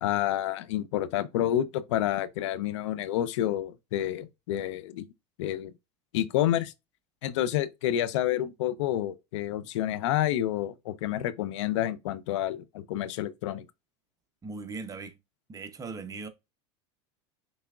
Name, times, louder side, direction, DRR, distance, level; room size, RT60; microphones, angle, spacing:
voice 1, 0.0-5.0 5.4-5.7 6.1-6.7 7.2-13.6, left 12 dB, 75° left, 0.6 m, -29 dB
voice 2, 14.4-15.2 15.5-16.3, right 4 dB, 20° right, 0.8 m, -39 dB
6.0 x 3.4 x 2.4 m
supercardioid pair, 110°, 15 cm